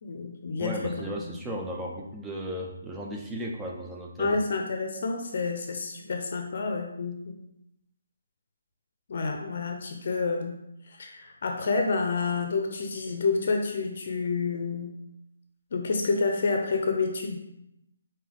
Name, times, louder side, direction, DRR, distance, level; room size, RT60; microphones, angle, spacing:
voice 1, 0.0-1.4 4.2-7.4 9.1-10.5 10.9-14.9 15.7-17.4, left 4 dB, 55° left, 3 dB, 0.6 m, -29 dB
voice 2, 0.6-4.4, equal, 5° right, -2 dB, 0.5 m, -35 dB
5.3 x 2.8 x 3.5 m, 0.82 s
hypercardioid pair, 160°, 0 cm